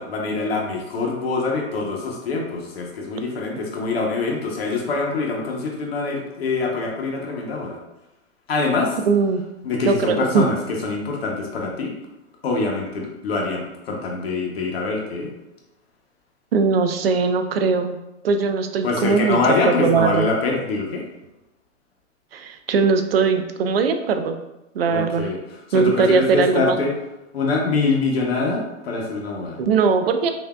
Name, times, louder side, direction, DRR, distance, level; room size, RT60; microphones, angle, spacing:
voice 1, 0.0-7.8 8.5-9.0 9.6-11.9 12.4-15.3 18.8-21.0 24.9-25.4 25.7-26.9 27.3-29.6, left 3 dB, 50° left, 0 dB, 0.9 m, -24 dB
voice 2, 9.1-9.4 9.9-10.4 16.5-18.0 18.2-20.3 22.3-24.4 24.7-25.3 25.7-26.8 29.6-30.3, right 5 dB, 50° right, 7 dB, 0.5 m, -20 dB
5.8 x 2.6 x 2.2 m, 0.93 s
hypercardioid pair, 160°, 39 cm